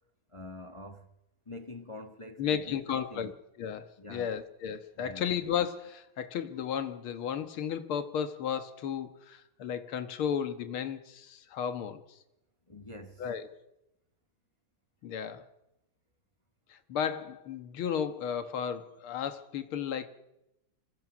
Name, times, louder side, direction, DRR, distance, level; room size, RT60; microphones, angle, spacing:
voice 1, 0.3-1.1 1.4-3.3 4.0-4.3 5.0-5.3 12.7-13.3, left 1 dB, 15° left, 1.3 m, -45 dB
voice 2, 2.4-3.3 3.6-12.2 13.2-13.6 15.0-15.5 16.7-20.1, left 8 dB, 80° left, 2.3 m, -34 dB
26.0 x 25.0 x 6.2 m
omnidirectional pair, 2.3 m